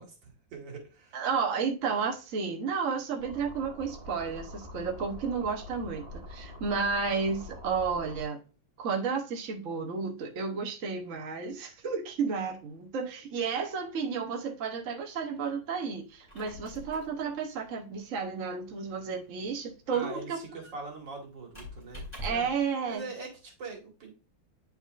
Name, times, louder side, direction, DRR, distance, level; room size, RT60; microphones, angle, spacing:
voice 1, 0.0-1.3 19.9-22.5 22.9-24.1, right 3 dB, 75° right, 2.5 m, -43 dB
voice 2, 1.1-8.4 8.8-20.4 22.2-23.0, right 5 dB, 50° right, 1.1 m, -32 dB
sound 1, 3.2-8.2, left 1 dB, 35° right, 2.2 m, -45 dB
Squeak, 16.1-22.7, equal, 15° left, 2.2 m, -46 dB
9.6 x 4.2 x 2.4 m
omnidirectional pair, 2.0 m